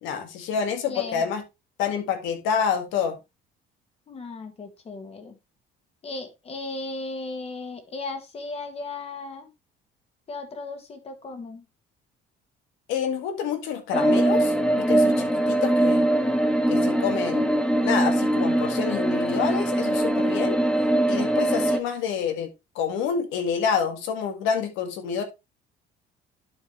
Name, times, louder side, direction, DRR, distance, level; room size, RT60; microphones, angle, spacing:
voice 1, 0.0-1.4 1.8-3.2 12.9-16.1 16.7-17.5 17.8-20.6 21.1-22.5 22.8-25.2, left 7 dB, 85° left, 2.0 m, -28 dB
voice 2, 0.8-1.3 4.1-5.4 6.0-9.5 10.3-11.6, left 3 dB, 30° left, 1.8 m, -36 dB
sound 1, 13.9-21.8, right 1 dB, 5° left, 0.9 m, -22 dB
11.0 x 4.8 x 3.2 m
cardioid pair, 145°, 20 cm